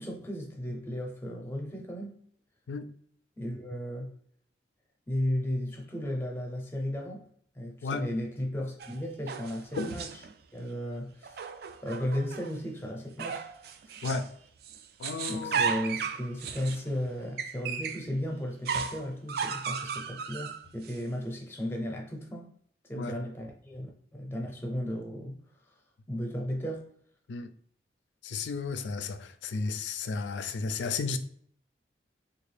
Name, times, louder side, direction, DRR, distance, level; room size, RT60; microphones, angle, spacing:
voice 1, 0.0-2.2 3.4-4.1 5.1-7.3 7.6-10.1 10.5-11.4 11.8-13.5 15.3-22.5 22.9-25.4 26.1-26.9, equal, 15° left, 0.6 m, -35 dB
sound 1, 8.8-10.3 11.2-12.6 13.2-14.3 14.6-18.1 18.7-21.0, right 6 dB, 60° right, 0.3 m, -35 dB
voice 2, 15.0-15.7 22.9-23.2 27.3-27.5 28.2-31.2, left 4 dB, 80° left, 0.4 m, -33 dB
3.4 x 2.4 x 3.3 m
head